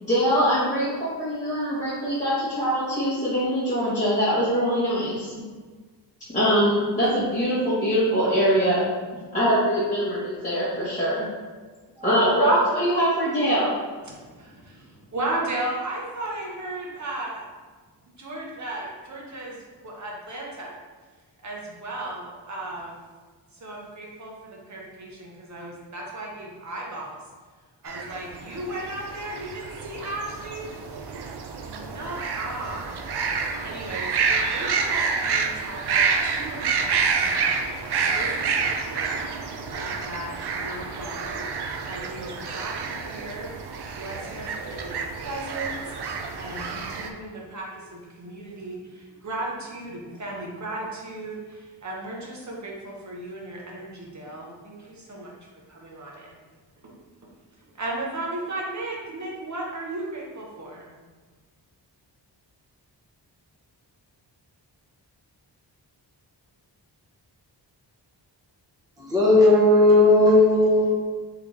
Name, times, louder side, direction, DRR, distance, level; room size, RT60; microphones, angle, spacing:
voice 1, 0.0-5.3 6.3-8.8 9.3-11.3 12.0-13.7, equal, 15° left, -13 dB, 1.1 m, -23 dB
voice 2, 14.0-17.5 18.2-19.6 19.8-20.8 21.4-23.0 23.5-27.2 27.8-30.7 31.6-33.0 33.6-41.5 41.8-43.5 44.0-55.3 55.7-56.5 56.8-56.9 57.7-61.0, right 2 dB, 40° right, -3 dB, 0.9 m, -36 dB
sound 1, 27.9-47.1, right 5 dB, 65° right, 0.5 m, -28 dB
voice 3, 69.0-70.9, left 2 dB, 10° right, -6 dB, 0.9 m, -16 dB
3.8 x 3.3 x 3.1 m, 1.4 s
wide cardioid pair, 135°, 44 cm